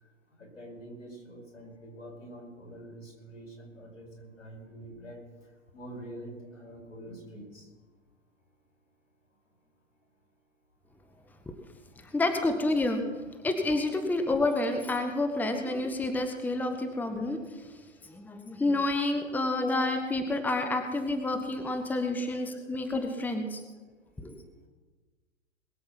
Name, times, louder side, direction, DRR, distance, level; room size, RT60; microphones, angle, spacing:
voice 1, 0.4-5.2 5.7-7.7 22.2-22.4, right 1 dB, 85° left, 0 dB, 4.9 m, -46 dB
voice 2, 12.0-23.6 24.2-24.4, left 2 dB, 5° left, 6 dB, 1.0 m, -29 dB
21.5 x 7.7 x 5.8 m, 1.3 s
hypercardioid pair, 120°, 37 cm